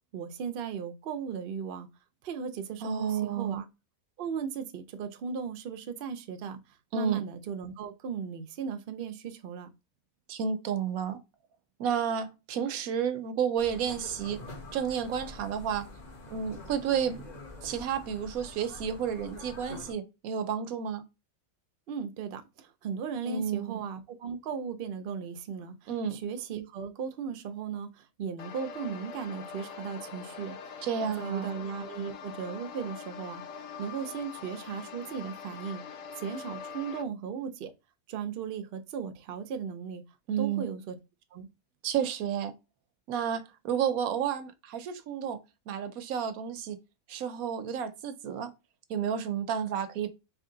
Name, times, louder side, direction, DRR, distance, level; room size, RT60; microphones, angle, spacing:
voice 1, 0.1-1.9 2.2-3.6 4.2-6.6 6.9-9.7 21.9-33.4 33.8-35.8 36.2-37.7 38.1-40.0 40.4-41.0 41.3-41.5, right 6 dB, 60° right, 0.6 m, -37 dB
voice 2, 2.8-3.6 6.9-7.2 10.3-11.2 11.8-14.4 14.7-15.8 16.3-17.2 17.6-21.0 23.3-23.7 25.9-26.2 30.8-31.6 40.3-40.6 41.8-42.5 43.1-45.4 45.7-46.8 47.1-48.5 48.9-50.1, right 8 dB, 80° right, 1.1 m, -31 dB
sound 1, 13.6-19.9, left 2 dB, 35° left, 1.0 m, -46 dB
sound 2, 28.4-37.0, left 6 dB, 75° left, 1.0 m, -43 dB
3.5 x 3.1 x 3.7 m
omnidirectional pair, 1.5 m